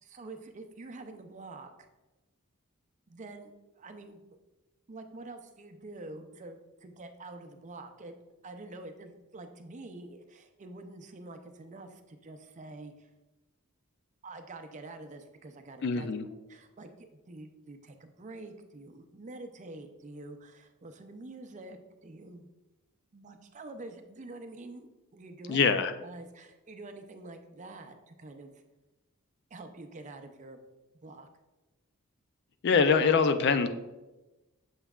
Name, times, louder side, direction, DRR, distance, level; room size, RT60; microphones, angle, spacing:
voice 1, 0.0-1.9 3.1-4.3 4.9-8.1 8.4-13.1 14.2-22.5 23.1-25.6 26.0-28.6 29.5-30.6 31.0-31.3, right 2 dB, 35° right, 7 dB, 0.5 m, -47 dB
voice 2, 15.8-16.2 25.5-25.9 32.6-33.7, left 5 dB, 50° left, 10 dB, 0.4 m, -24 dB
7.1 x 5.6 x 2.4 m, 1.1 s
head